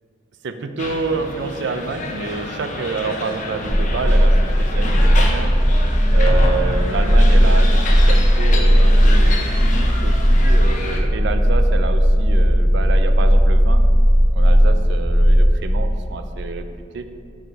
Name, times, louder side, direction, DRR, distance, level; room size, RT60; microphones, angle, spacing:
voice 1, 0.4-5.6 6.1-13.8 14.3-16.6 16.9-17.1, right 4 dB, 65° right, 8 dB, 0.4 m, -28 dB
sound 1, 0.8-11.0, left 2 dB, 40° left, 0.7 m, -29 dB
sound 2, 3.6-15.6, equal, ahead, 1.2 m, -15 dB
6.3 x 5.0 x 4.6 m, 2.4 s
head